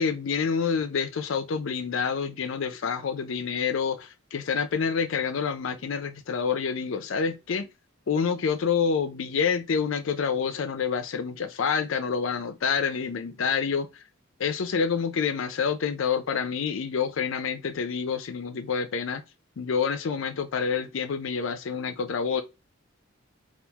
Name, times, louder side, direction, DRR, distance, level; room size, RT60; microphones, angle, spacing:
voice 1, 0.0-7.7 8.1-13.9 14.4-19.2 19.6-22.4, left 6 dB, 65° left, 0.4 m, -27 dB
3.4 x 2.4 x 2.9 m
head